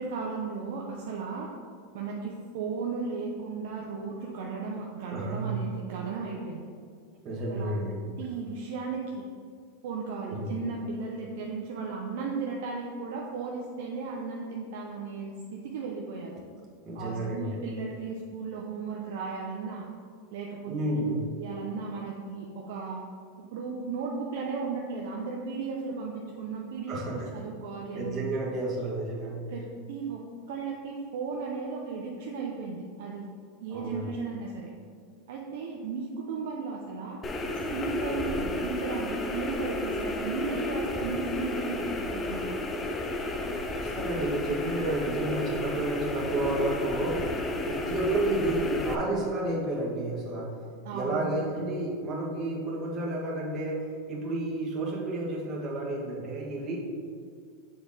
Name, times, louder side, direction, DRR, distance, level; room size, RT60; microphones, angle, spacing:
voice 1, 0.0-1.5 1.9-6.7 7.5-7.7 8.2-9.2 9.8-16.4 16.9-19.9 20.3-21.0 21.4-23.0 23.5-28.2 29.5-30.2 30.5-33.2 33.6-34.7 35.3-37.2 37.7-42.6 50.8-51.6, right 4 dB, 70° right, -2 dB, 0.7 m, -35 dB
voice 2, 5.1-5.5 7.2-8.0 10.3-10.5 16.8-17.6 20.7-21.2 26.9-27.3 27.9-29.5 33.7-34.1 43.7-47.2 47.6-50.6 50.9-56.8, right 2 dB, 35° right, -4 dB, 1.5 m, -31 dB
sound 1, 37.2-49.0, left 1 dB, 20° left, 0.6 m, -32 dB
6.8 x 4.1 x 3.7 m, 2.1 s
supercardioid pair, 120°, 0 cm